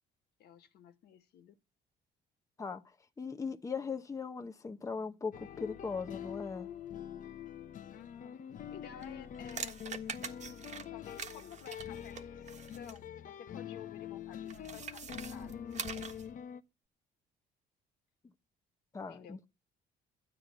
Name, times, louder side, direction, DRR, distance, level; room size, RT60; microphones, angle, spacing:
voice 1, 0.4-1.6 7.9-8.4 8.7-9.8 10.9-15.6 19.1-19.4, left 9 dB, 75° left, 1.8 m, -53 dB
voice 2, 3.2-6.7 18.9-19.5, left 5 dB, 20° left, 1.0 m, -39 dB
sound 1, 5.3-16.6, left 9 dB, 50° left, 1.0 m, -45 dB
sound 2, 9.0-13.0 14.5-16.3, right 6 dB, 45° right, 1.5 m, -44 dB
13.0 x 8.9 x 8.1 m
cardioid pair, 110°, 17 cm